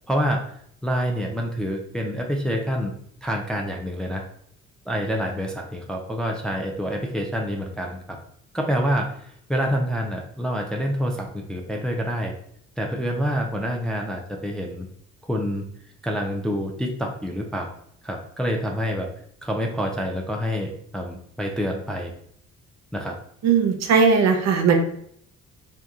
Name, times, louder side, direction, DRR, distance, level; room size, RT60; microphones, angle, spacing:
voice 1, 0.1-0.4 0.8-2.9 3.2-4.2 4.9-8.2 8.5-12.3 12.8-14.9 15.2-15.7 16.0-17.7 18.0-19.1 19.4-22.1 22.9-23.2, equal, 5° left, 1 dB, 0.3 m, -27 dB
voice 2, 23.4-24.9, right 5 dB, 60° right, 5 dB, 0.6 m, -18 dB
2.8 x 2.2 x 2.3 m, 0.65 s
cardioid pair, 90°, 30 cm